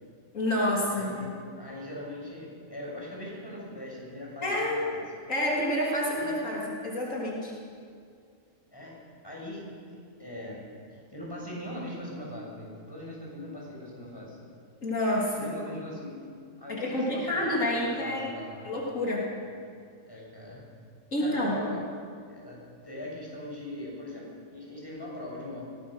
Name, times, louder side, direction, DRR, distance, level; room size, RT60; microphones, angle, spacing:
voice 1, 0.3-1.1 4.4-4.8 5.3-7.5 14.8-15.5 16.7-18.3 18.6-19.3 21.1-21.6, left 1 dB, 80° left, -4 dB, 3.9 m, -28 dB
voice 2, 0.9-5.0 6.2-6.3 8.7-8.9 9.2-10.6 10.9-14.4 15.3-16.2 16.6-18.7 20.0-20.6 21.2-21.8 22.3-22.6 22.8-25.6, left 1 dB, 15° left, -4 dB, 7.2 m, -41 dB
22.0 x 18.5 x 6.5 m, 2.3 s
omnidirectional pair, 1.3 m